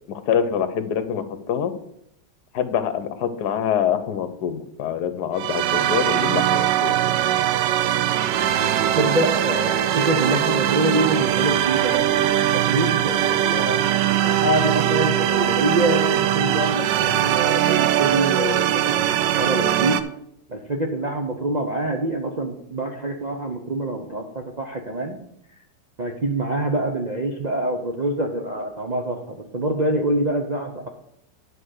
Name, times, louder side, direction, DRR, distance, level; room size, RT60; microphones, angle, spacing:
voice 1, 0.1-1.7 2.5-7.0, left 8 dB, 70° left, 11 dB, 1.4 m, -25 dB
sound 1, 5.4-20.0, right 11 dB, 80° right, 1.3 m, -21 dB
voice 2, 9.0-13.9 14.2-20.0 20.5-25.2 26.0-30.9, right 1 dB, 40° right, 1 dB, 0.6 m, -25 dB
10.0 x 4.9 x 6.5 m, 0.76 s
omnidirectional pair, 1.9 m